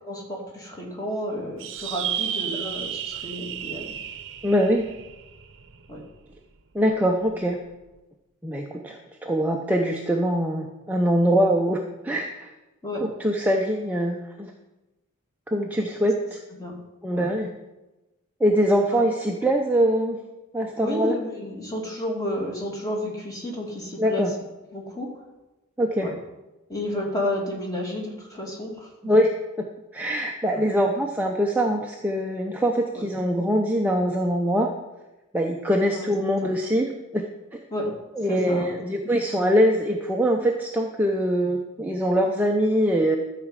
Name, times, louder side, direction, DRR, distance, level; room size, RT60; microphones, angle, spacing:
voice 1, 0.0-3.9 5.9-6.0 12.8-13.0 16.6-16.8 17.1-17.3 18.9-19.0 20.8-24.3 24.7-25.1 26.0-26.1 26.7-28.9 30.5-30.6 32.9-33.1 35.9-36.1 36.4-36.5 37.7-37.9 38.3-38.7, left 1 dB, 15° left, -1 dB, 2.4 m, -31 dB
sound 1, 1.6-6.3, right 9 dB, 55° right, 0.8 m, -33 dB
voice 2, 4.4-4.9 6.7-7.6 8.4-12.5 13.0-14.5 15.5-16.4 17.0-17.5 18.4-20.2 20.5-21.1 24.0-24.3 25.8-26.1 29.0-29.3 29.6-29.7 29.9-34.7 35.3-37.2 37.5-37.6 38.2-43.2, equal, 5° right, 1 dB, 0.7 m, -23 dB
13.0 x 5.0 x 7.4 m, 1.0 s
head